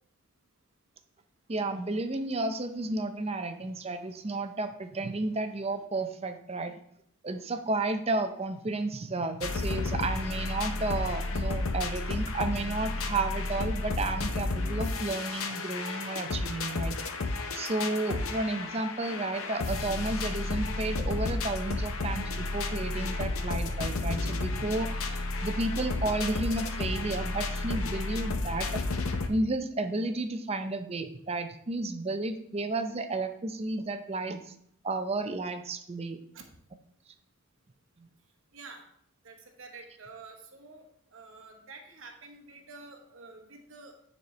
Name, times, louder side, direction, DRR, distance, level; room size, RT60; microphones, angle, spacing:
voice 1, 1.5-6.7 7.2-17.0 17.5-24.9 25.4-28.8 29.3-34.5 34.8-36.2, right 2 dB, 30° right, 7 dB, 0.5 m, -32 dB
sound 1, 9.4-29.3, left 2 dB, 75° left, 0.7 m, -32 dB
voice 2, 38.5-38.9 39.2-40.9 41.1-44.1, right 3 dB, 70° right, 2 dB, 1.0 m, -48 dB
9.5 x 4.3 x 3.2 m, 0.69 s
head